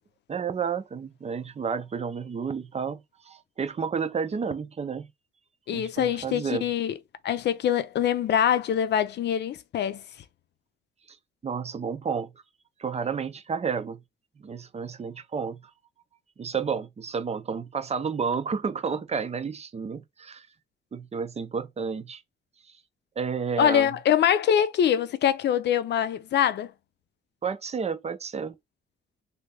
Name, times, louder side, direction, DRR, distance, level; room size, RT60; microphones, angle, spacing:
voice 1, 0.3-5.1 5.7-6.6 11.4-12.3 12.8-14.0 14.4-15.6 16.4-20.5 20.9-22.2 23.2-23.9 27.4-28.5, right 6 dB, 35° right, 0.6 m, -31 dB
voice 2, 5.7-6.9 7.2-10.0 23.6-26.7, left 9 dB, 60° left, 0.6 m, -24 dB
3.2 x 2.8 x 3.4 m
cardioid pair, 90°, 20 cm